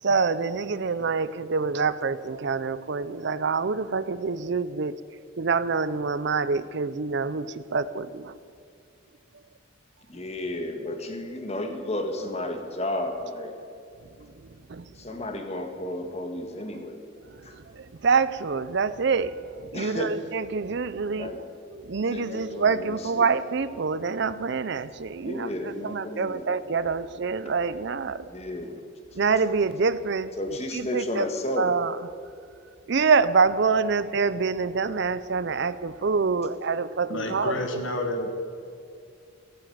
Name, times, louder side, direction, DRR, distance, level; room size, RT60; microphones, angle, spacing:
voice 1, 0.0-5.0 5.4-8.4 14.2-14.9 17.3-21.4 21.7-28.3 29.2-31.3 31.6-32.0 32.9-37.8, right 5 dB, 55° right, 15 dB, 0.5 m, -26 dB
voice 2, 10.1-13.5 14.9-17.0 17.4-17.5 19.7-20.2 21.1-21.4 22.1-23.3 25.2-26.5 28.2-28.8 30.4-31.7 37.2-37.7, left 1 dB, 30° left, 4 dB, 1.6 m, -33 dB
voice 3, 37.1-38.4, left 1 dB, 65° left, 5 dB, 1.9 m, -30 dB
16.0 x 8.8 x 9.2 m, 2.4 s
head